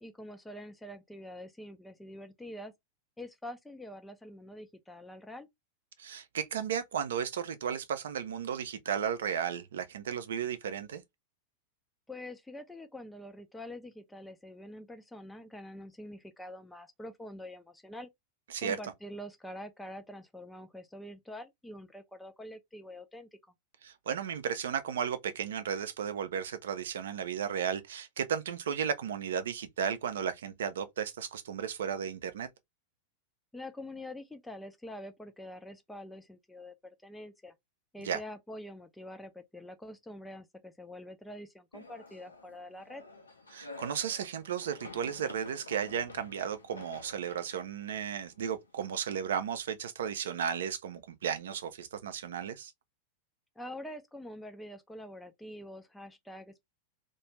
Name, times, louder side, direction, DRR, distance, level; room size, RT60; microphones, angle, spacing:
voice 1, 0.0-2.7 3.2-5.5 12.1-18.1 18.6-23.3 33.5-37.5 37.9-43.0 53.6-56.6, left 1 dB, 5° left, 0.4 m, -45 dB
voice 2, 6.0-11.0 18.5-18.8 23.8-32.5 38.0-38.2 43.5-52.7, right 8 dB, 60° right, 0.4 m, -34 dB
sound 1, 41.7-48.8, left 2 dB, 80° left, 0.5 m, -50 dB
2.4 x 2.2 x 2.9 m
figure-of-eight pair, 90°, 0 cm